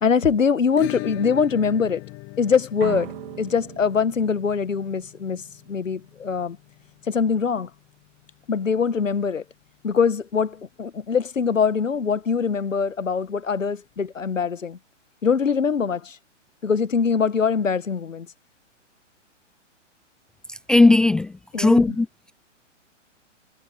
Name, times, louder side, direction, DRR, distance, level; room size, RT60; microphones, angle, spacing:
voice 1, 0.0-2.0 2.4-3.1 3.4-5.4 5.7-6.6 7.1-7.7 8.5-9.4 9.8-14.8 15.2-16.2 16.6-18.3 21.5-21.8, left 6 dB, 85° left, 1.4 m, -23 dB
Acoustic guitar / Strum, 0.8-9.4 9.6-9.7 10.0-10.1 10.5-10.6 12.6-12.7 13.9-14.0, left 28 dB, 30° left, 7.2 m, -40 dB
sound 1, 2.8-5.7, right 16 dB, 45° right, 2.5 m, -38 dB
voice 2, 20.7-22.1, left 2 dB, ahead, 0.4 m, -17 dB
hypercardioid pair, 125°, 38 cm